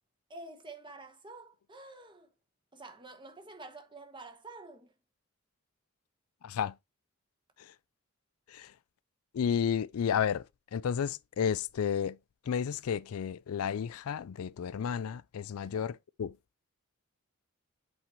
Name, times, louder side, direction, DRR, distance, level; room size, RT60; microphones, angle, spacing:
voice 1, 0.3-2.3 2.7-4.9 15.6-15.9, right 2 dB, 20° right, 1.1 m, -49 dB
voice 2, 6.4-6.8 7.6-7.7 8.5-8.7 9.3-12.2 12.4-16.4, left 7 dB, 80° left, 0.4 m, -32 dB
8.2 x 4.3 x 3.0 m
head